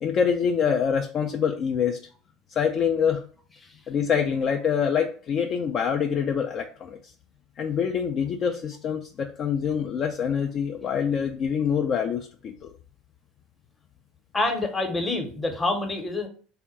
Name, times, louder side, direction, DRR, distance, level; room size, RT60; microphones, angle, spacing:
voice 1, 0.0-2.0 2.5-3.2 3.9-7.0 7.6-12.7, left 7 dB, 40° left, 3 dB, 0.3 m, -25 dB
voice 2, 14.3-16.3, left 2 dB, 15° left, 4 dB, 0.7 m, -26 dB
3.7 x 2.1 x 3.9 m, 0.42 s
figure-of-eight pair, 70°, 0 cm